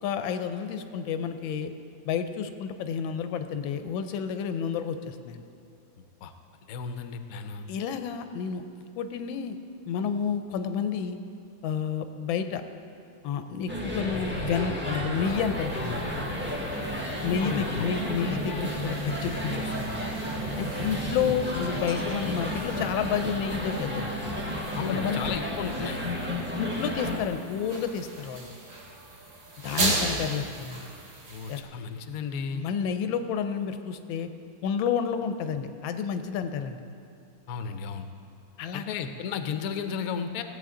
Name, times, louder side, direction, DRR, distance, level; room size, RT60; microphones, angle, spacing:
voice 1, 0.0-1.7 2.1-5.4 7.7-9.6 9.9-11.2 11.6-12.6 13.2-16.1 17.2-20.0 20.6-24.1 24.9-25.2 26.6-28.5 29.6-30.8 31.5-31.6 32.5-34.3 34.6-36.8 38.6-39.0, left 7 dB, 85° left, 9 dB, 1.4 m, -30 dB
voice 2, 6.7-7.7 17.4-18.0 24.7-26.0 31.3-32.6 37.5-38.1 38.7-40.4, left 6 dB, 65° left, 8 dB, 0.9 m, -34 dB
sound 1, 13.7-27.2, equal, 10° right, 0.8 m, -32 dB
sound 2, 13.8-23.0, right 2 dB, 50° right, 1.5 m, -41 dB
sound 3, 15.2-31.6, right 2 dB, 75° right, 2.3 m, -38 dB
15.5 x 8.2 x 3.8 m, 2.5 s
omnidirectional pair, 2.1 m